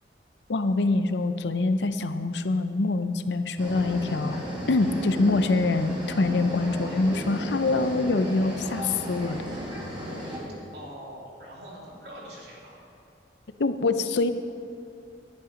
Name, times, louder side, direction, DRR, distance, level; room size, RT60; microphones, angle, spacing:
voice 1, 0.5-9.4 13.6-14.3, left 3 dB, 75° left, 10 dB, 0.6 m, -25 dB
sound 1, 3.6-10.4, equal, 25° right, 3.5 m, -34 dB
voice 2, 10.7-12.8, equal, 65° right, -5 dB, 3.2 m, -43 dB
12.0 x 10.5 x 5.2 m, 2.6 s
head